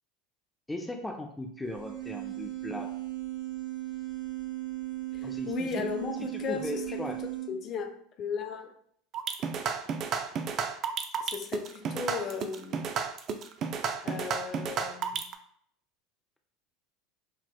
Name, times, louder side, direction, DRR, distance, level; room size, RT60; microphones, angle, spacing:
voice 1, 0.7-2.9 5.2-5.9 6.2-7.2, left 1 dB, 10° left, 3 dB, 0.6 m, -38 dB
sound 1, 1.6-7.5, right 17 dB, 85° right, 1.3 m, -37 dB
voice 2, 5.1-6.8 7.5-8.7 11.2-12.8 14.0-15.3, left 6 dB, 45° left, 4 dB, 0.7 m, -36 dB
sound 2, 9.1-15.3, right 6 dB, 45° right, 0.5 m, -32 dB
5.7 x 3.0 x 2.2 m, 0.63 s
hypercardioid pair, 85°, 0 cm